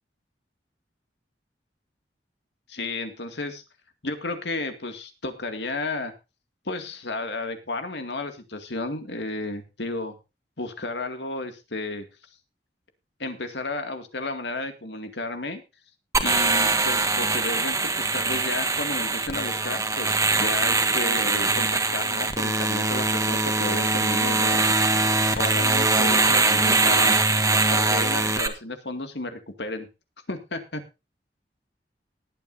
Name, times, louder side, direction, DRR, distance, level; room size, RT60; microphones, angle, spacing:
voice 1, 2.7-3.6 4.0-6.1 6.7-10.2 10.6-12.0 13.2-15.6 16.2-24.7 25.3-27.2 27.7-29.9 30.3-30.8, left 2 dB, 75° left, 7 dB, 2.2 m, -32 dB
sound 1, 16.1-28.5, right 3 dB, 20° right, 1.6 m, -22 dB
19.5 x 9.5 x 2.7 m, 0.27 s
head